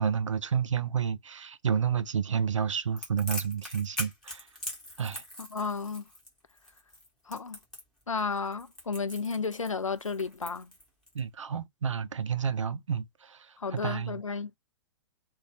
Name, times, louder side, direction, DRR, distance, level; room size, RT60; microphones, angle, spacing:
voice 1, 0.0-4.5 5.0-5.2 11.1-13.5 13.7-14.2, right 7 dB, 75° right, 0.5 m, -30 dB
Crackle, 3.0-11.2, left 1 dB, 5° left, 1.3 m, -41 dB
voice 2, 5.4-6.0 7.3-7.6 8.1-10.7 13.6-14.5, left 4 dB, 85° left, 0.4 m, -33 dB
2.6 x 2.3 x 3.8 m
figure-of-eight pair, 110°, 16 cm